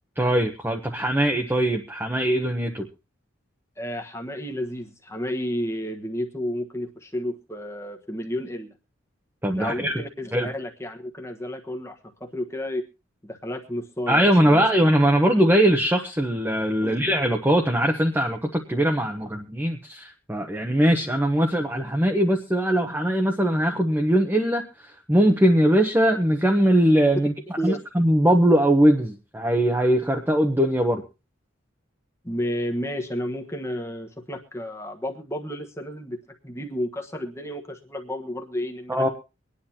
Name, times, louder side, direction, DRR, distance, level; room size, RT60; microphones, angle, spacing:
voice 1, 0.2-2.9 9.4-10.0 10.3-10.5 14.1-24.6 25.1-27.3 27.6-31.0 38.9-39.1, right 1 dB, 10° right, 3 dB, 0.9 m, -21 dB
voice 2, 3.8-8.7 9.5-12.8 13.2-14.6 16.8-17.0 27.6-27.8 32.2-36.2 36.4-39.1, equal, 15° left, 3 dB, 1.3 m, -31 dB
24.0 x 10.0 x 2.9 m, 0.29 s
head